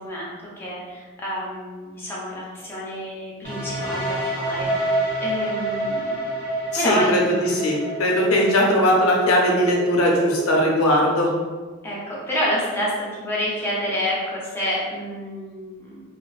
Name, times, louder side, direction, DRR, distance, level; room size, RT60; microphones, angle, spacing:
voice 1, 0.0-6.3 6.8-7.4 11.8-16.0, equal, 10° left, -6 dB, 0.6 m, -28 dB
sound 1, 3.4-11.2, right 1 dB, 40° right, 0.6 m, -28 dB
voice 2, 6.7-11.3, equal, 75° left, -2 dB, 0.6 m, -19 dB
2.5 x 2.3 x 2.3 m, 1.4 s
head